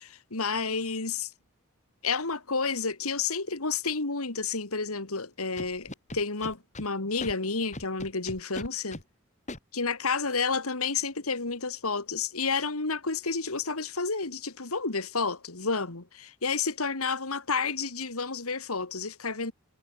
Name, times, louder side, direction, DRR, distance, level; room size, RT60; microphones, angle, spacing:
voice 1, 0.3-1.3 2.0-9.0 9.7-19.5, left 4 dB, 85° left, 2.5 m, -30 dB
Scratching (performance technique), 5.6-6.9 7.2-7.3 7.7-9.0 9.5-9.6, left 1 dB, 35° left, 4.0 m, -38 dB
head